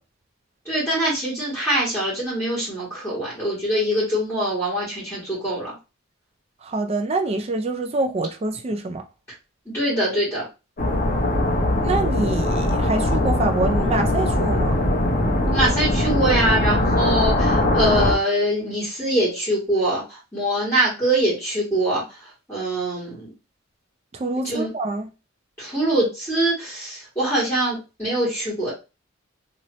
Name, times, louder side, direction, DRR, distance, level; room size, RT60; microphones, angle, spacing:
voice 1, 0.7-5.8 9.7-10.4 15.5-22.0 22.5-23.3 24.4-24.7 25.6-28.7, right 1 dB, 10° left, 1.7 m, -23 dB
voice 2, 6.6-9.0 11.8-14.8 24.1-25.1, right 2 dB, 30° right, 0.3 m, -25 dB
sound 1, 10.8-18.1, left 1 dB, 40° left, 0.8 m, -21 dB
2.8 x 2.8 x 3.0 m
head